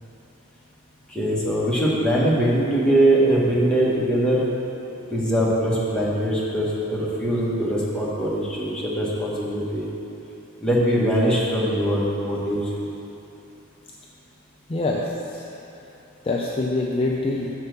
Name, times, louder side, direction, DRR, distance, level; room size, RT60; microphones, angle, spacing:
voice 1, 1.1-4.4 5.1-9.9 10.6-12.8, right 1 dB, 5° left, -7 dB, 1.3 m, -22 dB
voice 2, 14.7-15.6 16.2-17.5, left 2 dB, 25° left, -3 dB, 0.5 m, -25 dB
7.2 x 4.5 x 6.7 m, 2.8 s
head